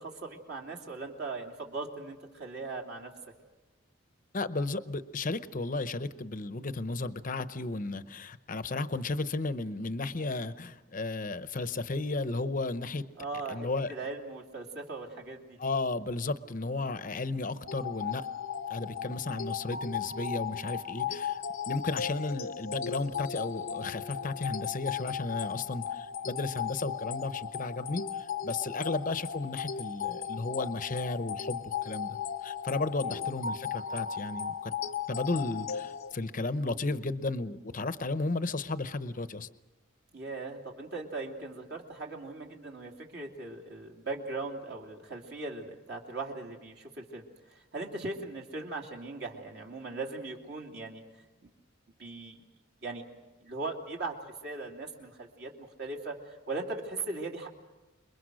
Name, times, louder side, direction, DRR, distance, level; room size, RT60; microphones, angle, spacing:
voice 1, 0.0-3.1 13.2-15.6 28.7-29.1 33.0-33.2 40.1-51.0 51.4-51.5 52.0-52.4 52.8-53.0 53.4-54.2 54.4-57.5, right 3 dB, 50° right, 1 dB, 2.9 m, -39 dB
voice 2, 4.3-13.0 13.5-13.9 15.6-18.3 18.7-34.7 35.1-39.5, left 3 dB, 40° left, 12 dB, 0.8 m, -34 dB
sound 1, 17.7-36.1, left 7 dB, 80° left, 0.9 m, -36 dB
27.5 x 22.5 x 6.4 m, 1.1 s
head